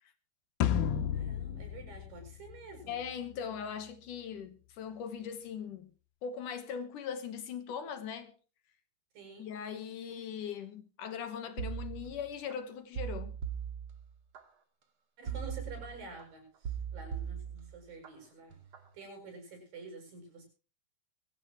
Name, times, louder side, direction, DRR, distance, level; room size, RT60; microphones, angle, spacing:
sound 1, 0.6-3.1, left 9 dB, 85° left, 2.9 m, -32 dB
voice 1, 1.1-3.0 9.1-9.5 15.2-18.6 18.9-20.5, right 3 dB, 65° right, 8.7 m, -48 dB
voice 2, 2.9-5.9 6.2-8.3 9.4-13.4, left 7 dB, 70° left, 2.6 m, -40 dB
sound 2, 11.6-12.5 12.9-14.4 15.3-16.2 16.6-18.1 18.5-18.9, right 8 dB, 45° right, 2.2 m, -39 dB
22.0 x 15.5 x 3.0 m
omnidirectional pair, 4.2 m